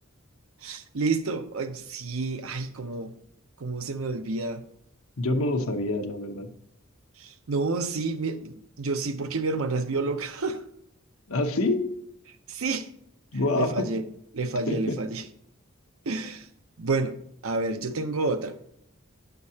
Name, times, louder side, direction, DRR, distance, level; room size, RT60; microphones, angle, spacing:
voice 1, 0.6-3.1 3.6-4.6 7.2-10.6 12.5-12.9 13.5-14.0 14.3-15.2 16.1-16.5 16.8-17.1 17.4-18.5, right 3 dB, 75° right, 9 dB, 0.7 m, -29 dB
voice 2, 5.2-6.5 11.3-11.9 13.3-13.9 14.7-15.0, left 2 dB, 90° left, 5 dB, 0.9 m, -26 dB
9.3 x 6.9 x 2.8 m, 0.75 s
head